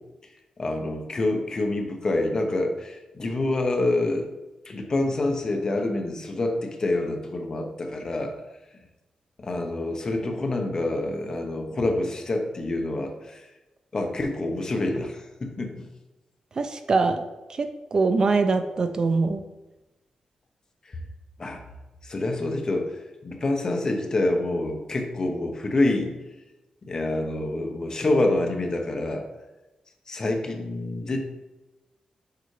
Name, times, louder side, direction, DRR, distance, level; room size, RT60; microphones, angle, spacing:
voice 1, 0.6-4.3 4.7-8.3 9.4-13.4 13.9-15.9 21.4-21.6 22.0-26.1 26.8-29.2 30.1-31.2, left 2 dB, 30° left, 3 dB, 0.7 m, -27 dB
voice 2, 16.6-19.4, right 4 dB, 35° right, 8 dB, 0.3 m, -23 dB
6.6 x 4.7 x 3.2 m, 1.1 s
wide cardioid pair, 170°, 2 cm